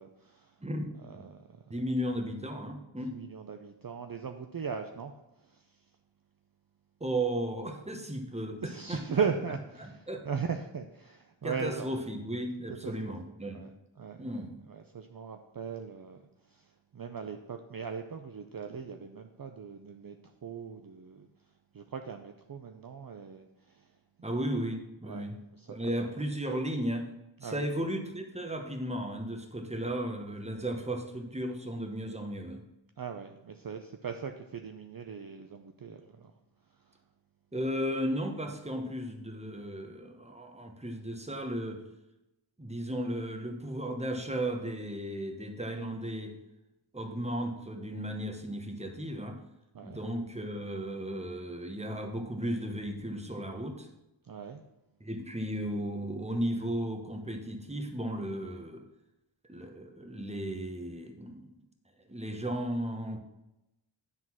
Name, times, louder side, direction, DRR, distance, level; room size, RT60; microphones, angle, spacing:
voice 1, 0.0-0.6 1.0-1.7 3.0-5.9 8.6-11.9 12.8-12.9 13.5-13.7 14.0-14.4 14.7-21.3 21.7-24.4 25.0-25.8 26.0-26.1 27.4-27.7 33.0-36.3 36.7-37.0 47.2-47.3 49.7-50.0 54.2-54.6, right 6 dB, 45° right, 6 dB, 0.5 m, -39 dB
voice 2, 0.6-1.2 1.7-3.1 7.0-9.0 10.1-10.2 11.4-13.7 14.2-14.6 24.2-25.4 25.7-27.1 27.4-32.6 37.5-41.8 42.6-46.4 46.9-49.4 49.8-53.9 55.0-58.8 59.5-61.6 62.1-63.2, right 1 dB, 15° right, 4 dB, 1.1 m, -35 dB
9.8 x 3.9 x 6.0 m, 0.93 s
wide cardioid pair, 60°, 48 cm